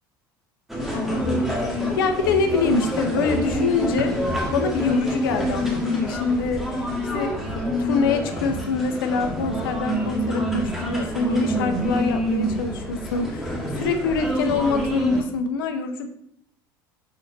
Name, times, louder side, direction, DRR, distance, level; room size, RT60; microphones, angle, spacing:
sound 1, 0.7-15.2, equal, 5° right, 1.8 m, -27 dB
voice 1, 0.9-6.7 7.1-16.1, left 4 dB, 80° left, 6 dB, 0.8 m, -25 dB
7.0 x 4.1 x 4.0 m, 0.72 s
hypercardioid pair, 80°, 12 cm